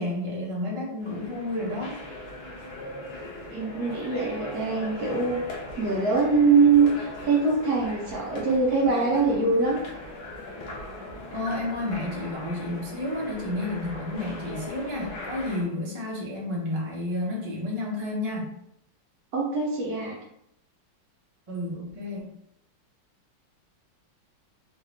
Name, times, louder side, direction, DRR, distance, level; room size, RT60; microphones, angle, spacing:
voice 1, 0.0-1.9 11.3-18.5 21.5-22.3, left 1 dB, 40° right, -5 dB, 0.4 m, -31 dB
sound 1, 1.0-15.6, left 2 dB, 85° left, 1.7 m, -39 dB
voice 2, 3.5-9.8 19.3-20.1, right 4 dB, 65° right, -3 dB, 1.0 m, -23 dB
3.9 x 2.5 x 3.1 m, 0.76 s
omnidirectional pair, 2.2 m